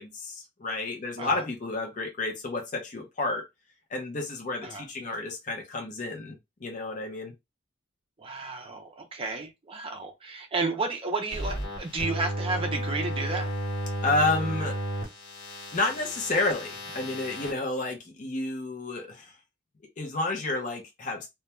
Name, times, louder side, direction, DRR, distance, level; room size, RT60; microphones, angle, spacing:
voice 1, 0.0-3.4 3.9-7.3 14.0-14.8 15.7-19.3 20.0-21.3, left 2 dB, 40° left, 0.6 m, -30 dB
voice 2, 8.2-13.5, right 3 dB, 25° right, 0.5 m, -32 dB
sound 1, 11.3-17.5, right 1 dB, 55° left, 1.1 m, -33 dB
2.2 x 2.2 x 2.9 m
head